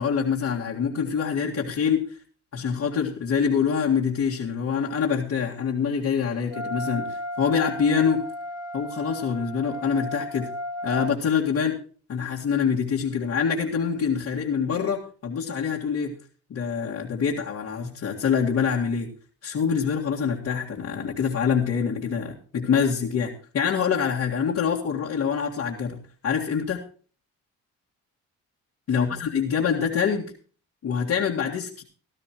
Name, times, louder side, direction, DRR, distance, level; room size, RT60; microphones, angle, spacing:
voice 1, 0.0-2.1 2.5-8.2 8.7-10.5 10.8-11.8 12.1-16.2 16.5-19.1 19.4-26.8 28.9-30.3 30.8-31.8, left 6 dB, 60° left, -4 dB, 1.9 m, -25 dB
Wind instrument woodwind instrument, 6.5-11.1, equal, 45° right, 4.8 m, -34 dB
17.0 x 12.5 x 3.0 m, 0.39 s
cardioid pair, 90°, 30 cm